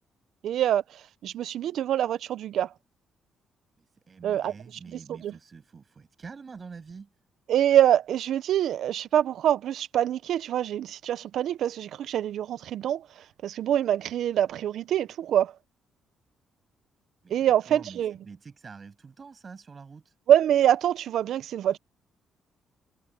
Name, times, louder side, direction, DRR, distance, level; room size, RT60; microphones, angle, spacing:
voice 1, 0.4-0.8 1.2-2.7 4.2-4.5 4.9-5.3 7.5-13.0 13.4-15.5 17.3-18.1 20.3-21.8, right 11 dB, 75° right, 0.8 m, -25 dB
voice 2, 4.1-7.1 17.2-20.1, right 5 dB, 35° right, 7.5 m, -46 dB
cardioid pair, 90°, 0 cm